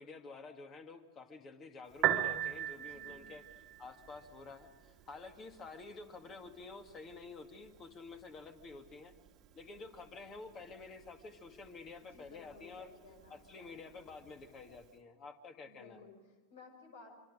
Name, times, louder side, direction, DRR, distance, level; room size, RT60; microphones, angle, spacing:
voice 1, 0.0-3.4 3.8-9.1 9.5-12.9 13.3-16.0, left 4 dB, 25° left, 6 dB, 2.2 m, -50 dB
Piano, 1.9-14.9, right 12 dB, 35° right, 1.8 m, -43 dB
voice 2, 2.7-3.2 12.0-13.8 15.6-17.2, left 4 dB, 65° left, 3 dB, 6.1 m, -57 dB
26.0 x 25.0 x 5.0 m, 1.3 s
figure-of-eight pair, 90°, 0 cm